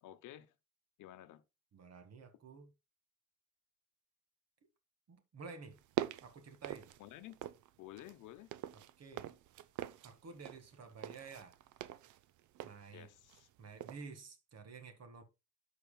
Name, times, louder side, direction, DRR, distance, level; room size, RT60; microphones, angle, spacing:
voice 1, 0.0-0.5 1.0-1.4 7.0-7.4 7.8-8.5 12.9-13.5, left 14 dB, 85° left, 0.8 m, -52 dB
voice 2, 1.7-2.7 5.1-5.8 6.2-6.9 8.7-9.3 10.0-11.6 12.6-13.1 13.6-15.2, right 4 dB, 55° right, 1.9 m, -52 dB
sound 1, 5.7-7.7 8.0-13.5 13.8-14.0, right 13 dB, 80° right, 0.6 m, -44 dB
12.5 x 4.8 x 2.3 m
cardioid pair, 90°, 30 cm